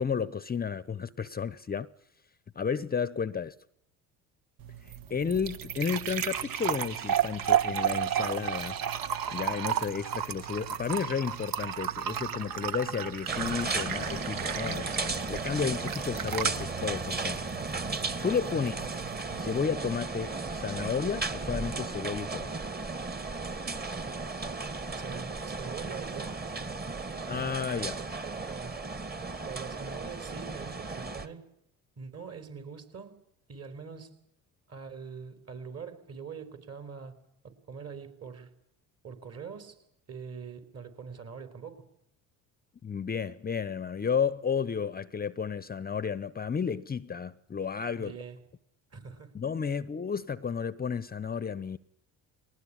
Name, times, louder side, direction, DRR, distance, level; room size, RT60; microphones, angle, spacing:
voice 1, 0.0-1.9 2.6-3.5 4.8-8.8 9.3-17.4 18.2-18.9 19.4-22.5 27.3-27.9 42.8-48.1 49.3-51.8, left 6 dB, 25° left, 0.8 m, -32 dB
sound 1, 4.6-19.6, right 9 dB, 60° right, 1.5 m, -33 dB
sound 2, 13.3-31.3, right 3 dB, 25° right, 2.1 m, -35 dB
voice 2, 18.5-18.9 24.9-26.9 28.2-28.9 29.4-31.5 32.0-33.2 33.5-34.2 34.7-37.2 37.4-38.5 39.0-39.8 40.1-41.9 48.0-48.4 48.9-49.3, right 6 dB, 40° right, 4.3 m, -43 dB
20.5 x 19.0 x 9.9 m
supercardioid pair, 80°, 38 cm